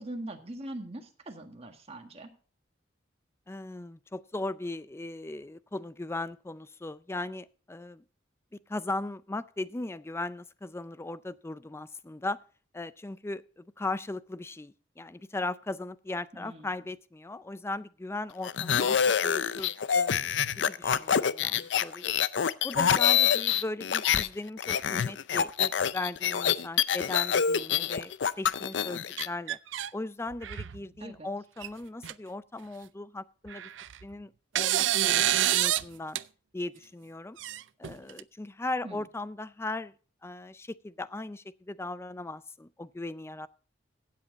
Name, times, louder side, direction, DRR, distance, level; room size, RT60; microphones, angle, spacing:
voice 1, 0.0-2.3 16.3-16.7 18.8-19.1 31.0-31.3 38.8-39.0, right 1 dB, 35° right, 4 dB, 1.7 m, -42 dB
voice 2, 3.5-8.0 8.5-12.4 12.7-22.1 22.6-28.1 28.4-29.6 29.9-33.7 34.0-35.2 35.5-36.2 36.5-37.4 37.8-39.9 40.2-43.5, left 2 dB, 15° left, 16 dB, 0.4 m, -38 dB
sound 1, 18.4-24.3 24.6-29.3, left 8 dB, 70° left, 0.5 m, -26 dB
sound 2, 29.2-29.9 30.3-30.8 31.6-31.7 32.0-32.1 33.5-34.0 34.6-35.8 36.2-36.3 37.4-38.2, right 13 dB, 90° right, 0.4 m, -27 dB
16.0 x 7.7 x 4.0 m, 0.40 s
head